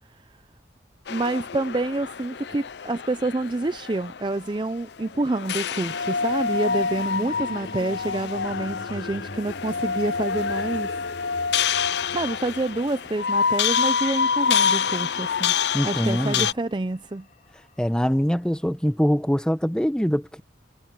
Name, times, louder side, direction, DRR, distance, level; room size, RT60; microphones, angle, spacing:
sound 1, 1.1-16.5, left 6 dB, 65° left, 0.5 m, -27 dB
voice 1, 1.1-10.9 12.1-15.5 15.8-17.3, right 2 dB, 25° right, 0.4 m, -27 dB
sound 2, 1.8-3.9 5.5-17.8, left 1 dB, 45° left, 3.0 m, -46 dB
voice 2, 15.7-16.5 17.8-20.4, equal, 5° left, 0.8 m, -23 dB
head